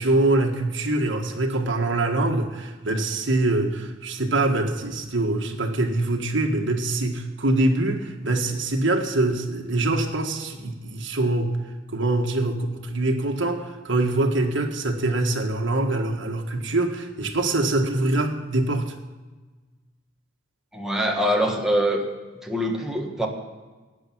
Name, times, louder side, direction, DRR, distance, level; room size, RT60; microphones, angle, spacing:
voice 1, 0.0-11.6 11.9-18.9, right 2 dB, 65° right, 3 dB, 1.7 m, -24 dB
voice 2, 20.7-22.0 22.4-23.3, equal, ahead, 0 dB, 1.7 m, -23 dB
13.0 x 9.9 x 6.2 m, 1.3 s
head